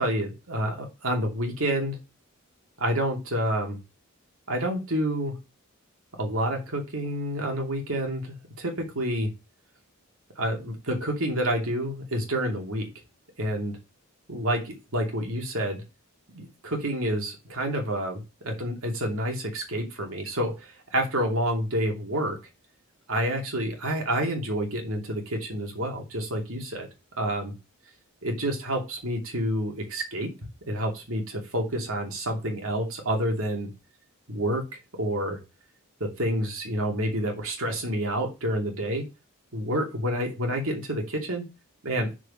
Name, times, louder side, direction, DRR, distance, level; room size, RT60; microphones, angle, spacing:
voice 1, 0.0-2.0 2.8-3.8 4.5-5.3 6.2-9.3 10.4-12.9 13.4-13.8 14.3-15.8 16.3-20.5 20.9-22.4 23.1-26.9 27.2-27.5 28.2-30.3 30.7-33.7 34.3-34.6 35.0-35.4 36.0-39.0 39.5-41.5 41.8-42.1, equal, 65° right, 2 dB, 2.7 m, -28 dB
6.5 x 5.0 x 4.9 m, 0.25 s
head